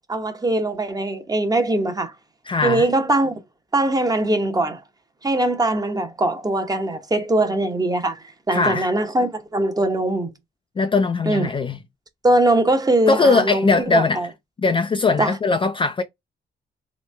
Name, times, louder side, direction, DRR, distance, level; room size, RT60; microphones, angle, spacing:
voice 1, 0.1-2.1 2.6-3.3 3.7-4.8 5.2-8.2 8.5-10.3 11.3-11.5 12.2-14.3 15.2-15.3, right 2 dB, 20° right, 0.9 m, -21 dB
voice 2, 2.5-2.9 8.5-8.9 10.8-11.8 13.1-14.3 14.6-16.0, left 4 dB, 25° left, 0.4 m, -20 dB
3.1 x 3.1 x 3.2 m
cardioid pair, 90°, 20 cm